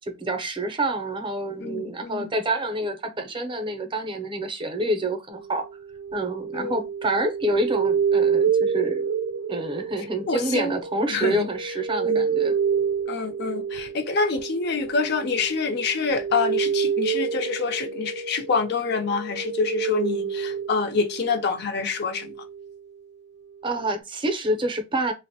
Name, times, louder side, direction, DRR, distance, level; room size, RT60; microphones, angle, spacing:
voice 1, 0.0-5.6 6.1-9.1 9.5-12.5 23.6-25.1, right 1 dB, 25° right, 0.5 m, -27 dB
voice 2, 1.6-2.3 6.5-6.8 10.3-10.7 11.1-11.5 12.0-12.3 13.1-22.3, left 4 dB, 60° left, 0.5 m, -26 dB
sound 1, 5.3-21.6 22.0-22.8, right 6 dB, 85° right, 0.4 m, -28 dB
3.3 x 2.0 x 2.6 m
head